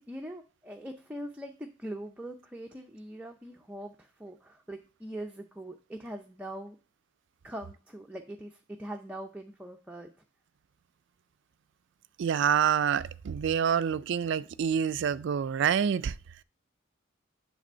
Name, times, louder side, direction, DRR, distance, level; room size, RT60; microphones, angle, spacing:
voice 1, 0.1-6.8 7.4-10.1, right 1 dB, 5° right, 0.5 m, -42 dB
voice 2, 12.2-16.1, right 8 dB, 65° right, 0.3 m, -27 dB
7.6 x 3.4 x 5.5 m
head